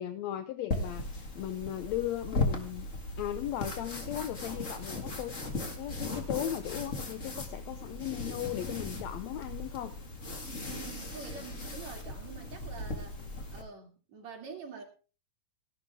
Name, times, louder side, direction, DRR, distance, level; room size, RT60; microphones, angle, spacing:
voice 1, 0.0-2.9 3.2-10.0, left 12 dB, 80° left, 10 dB, 1.6 m, -37 dB
sound 1, 0.7-13.6, left 2 dB, 30° left, 1.7 m, -37 dB
voice 2, 10.7-14.8, right 5 dB, 55° right, 2 dB, 3.5 m, -46 dB
16.5 x 11.5 x 3.6 m, 0.35 s
omnidirectional pair, 4.0 m